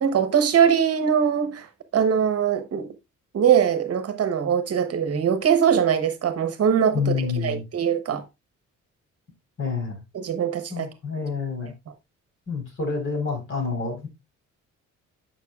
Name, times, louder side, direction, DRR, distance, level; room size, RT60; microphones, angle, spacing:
voice 1, 0.0-1.7 1.9-2.9 3.3-8.2 10.1-10.9, right 8 dB, 50° right, 1.0 m, -22 dB
voice 2, 6.9-7.6 9.6-10.0 10.7-11.7 12.5-14.1, left 5 dB, 45° left, 4.1 m, -28 dB
10.0 x 5.6 x 2.4 m
cardioid pair, 90°, 30 cm